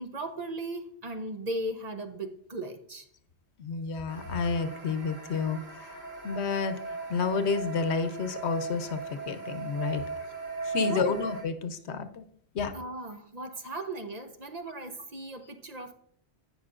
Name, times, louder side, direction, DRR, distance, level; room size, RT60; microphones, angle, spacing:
voice 1, 0.0-3.1 10.7-11.2 12.7-15.9, right 1 dB, 40° right, 0.7 m, -37 dB
voice 2, 3.6-6.8 7.1-10.0 10.6-12.3 12.5-12.7, left 5 dB, 75° left, 1.1 m, -30 dB
sound 1, 4.1-11.4, right 4 dB, 65° right, 2.3 m, -38 dB
16.0 x 5.6 x 2.5 m
omnidirectional pair, 1.1 m